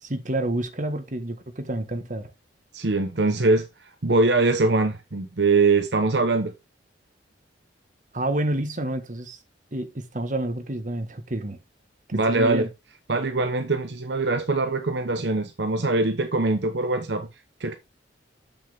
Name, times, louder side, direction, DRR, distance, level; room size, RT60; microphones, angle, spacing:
voice 1, 0.0-2.3 8.1-9.4 9.7-11.6 12.1-12.7, right 1 dB, 40° right, 1.5 m, -29 dB
voice 2, 2.7-6.5 12.1-12.7 13.1-17.3 17.6-17.7, right 3 dB, 65° right, 0.9 m, -23 dB
7.8 x 7.1 x 3.5 m
head